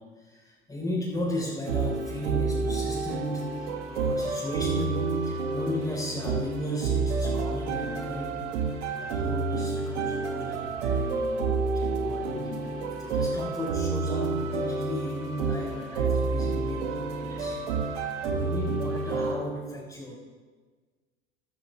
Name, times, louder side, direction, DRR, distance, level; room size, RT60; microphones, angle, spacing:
voice 1, 0.0-8.5 8.9-20.2, left 1 dB, 10° left, -8 dB, 4.8 m, -36 dB
sound 1, 1.7-19.3, right 4 dB, 75° right, 1.7 m, -29 dB
14.5 x 13.0 x 3.6 m, 1.4 s
hypercardioid pair, 85°, 36 cm